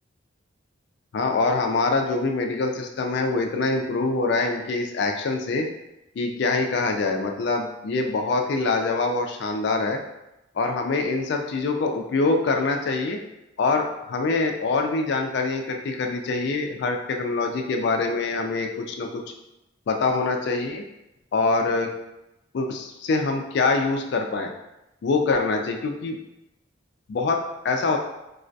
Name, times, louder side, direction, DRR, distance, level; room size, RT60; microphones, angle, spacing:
voice 1, 1.1-5.7 6.2-10.0 10.6-13.2 13.6-19.2 19.9-20.8 21.3-21.9 22.5-24.5 25.0-26.2 27.1-28.0, left 3 dB, 60° left, 3 dB, 0.3 m, -24 dB
2.3 x 2.2 x 2.5 m, 0.92 s
head